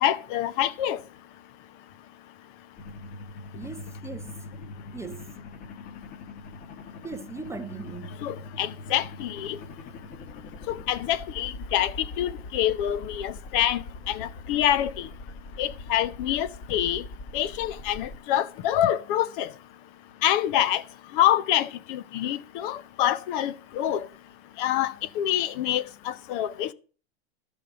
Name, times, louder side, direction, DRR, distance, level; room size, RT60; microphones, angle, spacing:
voice 1, 0.0-1.0 8.2-9.6 10.7-15.1 15.6-17.0 17.3-19.5 20.2-20.8 21.1-24.1 24.6-26.7, left 11 dB, 55° left, 0.7 m, -26 dB
sound 1, 2.8-18.2, left 2 dB, 30° left, 1.2 m, -42 dB
voice 2, 3.6-4.5 4.9-5.3 7.0-8.2, right 4 dB, 10° right, 0.5 m, -39 dB
12.0 x 5.4 x 5.9 m
hypercardioid pair, 115°, 31 cm